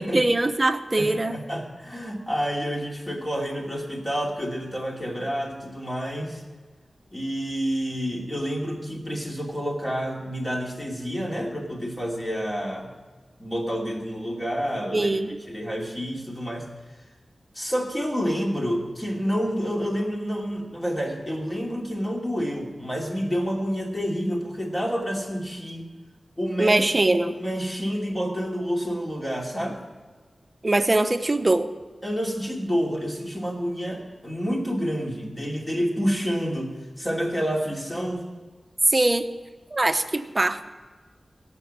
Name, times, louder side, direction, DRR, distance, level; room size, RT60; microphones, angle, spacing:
voice 1, 0.1-1.4 14.9-15.4 26.6-27.4 30.6-31.7 38.9-39.3 39.7-40.6, right 2 dB, 30° right, 9 dB, 0.8 m, -22 dB
voice 2, 1.0-6.4 7.1-12.9 13.4-15.1 15.5-16.7 17.5-25.9 26.4-26.8 27.2-29.8 32.0-38.3, equal, 20° left, -1 dB, 2.6 m, -28 dB
17.0 x 6.1 x 7.3 m, 1.4 s
wide cardioid pair, 80°, 0 cm